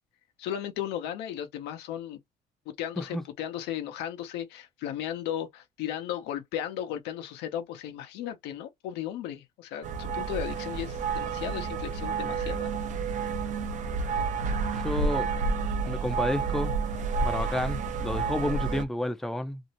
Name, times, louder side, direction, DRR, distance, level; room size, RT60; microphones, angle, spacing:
voice 1, 0.4-2.2 2.7-12.7, left 10 dB, 90° left, 0.7 m, -35 dB
sound 1, 9.8-18.9, right 5 dB, 50° right, 0.5 m, -30 dB
voice 2, 14.7-15.3 15.9-16.7 17.2-19.6, left 1 dB, ahead, 0.4 m, -30 dB
2.5 x 2.0 x 2.8 m
cardioid pair, 110°, 17 cm